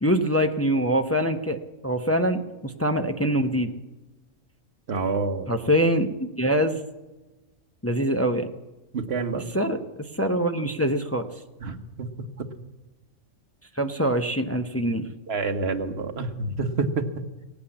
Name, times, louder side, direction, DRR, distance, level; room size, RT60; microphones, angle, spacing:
voice 1, 0.0-3.7 5.5-6.8 7.8-8.5 9.3-11.3 13.8-15.1, equal, 15° left, 5 dB, 0.6 m, -24 dB
voice 2, 4.9-5.5 8.9-9.5 11.6-12.1 12.4-12.5 15.3-17.1, right 4 dB, 55° right, 6 dB, 1.4 m, -28 dB
17.5 x 8.6 x 8.6 m, 1.1 s
omnidirectional pair, 1.3 m